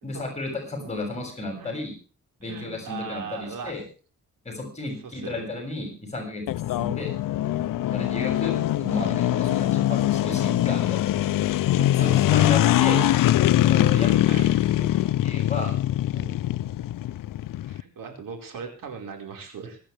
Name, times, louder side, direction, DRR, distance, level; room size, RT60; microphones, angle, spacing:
voice 1, 0.0-2.0 2.4-3.8 4.5-6.4 6.8-7.1 7.9-9.5 9.7-11.0 12.0-13.0 13.6-15.7 16.1-16.3, left 2 dB, 20° left, 2 dB, 7.0 m, -33 dB
voice 2, 2.4-3.7 5.0-5.5 9.4-9.7 11.2-11.4 11.7-12.1 12.9-13.2 13.9-14.5 17.7-19.8, right 5 dB, 85° right, 3 dB, 4.9 m, -38 dB
sound 1, 6.5-17.8, left 13 dB, 85° left, 0.6 m, -22 dB
25.0 x 10.0 x 3.4 m, 0.37 s
wide cardioid pair, 125°, 32 cm